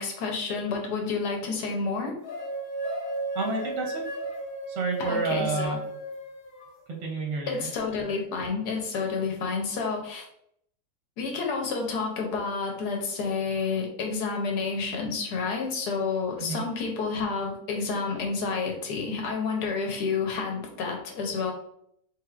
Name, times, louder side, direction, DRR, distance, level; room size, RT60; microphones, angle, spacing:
voice 1, 0.0-2.2 5.0-5.8 7.5-10.3 11.2-21.5, left 4 dB, 75° left, 1 dB, 1.2 m, -30 dB
sound 1, 2.2-6.7, right 2 dB, 55° left, 0.5 m, -34 dB
voice 2, 3.3-4.0 4.7-5.8 6.9-7.6 16.4-16.6, right 3 dB, 60° right, 0 dB, 0.8 m, -30 dB
3.3 x 3.2 x 2.3 m, 0.71 s
omnidirectional pair, 1.8 m